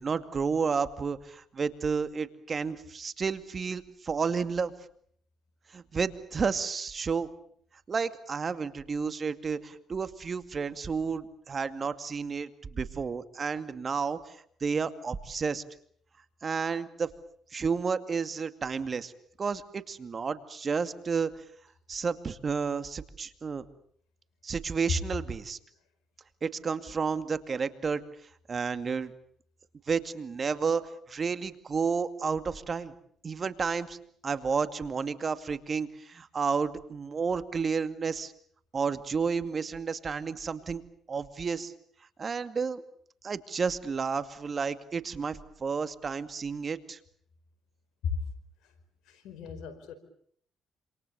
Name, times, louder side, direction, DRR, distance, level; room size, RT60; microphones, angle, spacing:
voice 1, 0.0-4.7 5.7-7.3 7.9-15.6 16.4-17.1 17.5-19.1 19.4-21.3 21.9-23.6 24.4-25.6 26.4-28.0 28.5-29.1 29.9-32.9 33.2-34.0 34.2-38.3 38.7-40.8 41.1-41.7 42.2-42.8 43.2-47.0, right 5 dB, 45° right, 11 dB, 2.3 m, -31 dB
voice 2, 49.1-49.9, left 7 dB, 80° left, 11 dB, 4.9 m, -35 dB
27.5 x 27.5 x 7.0 m, 0.62 s
supercardioid pair, 65°, 0 cm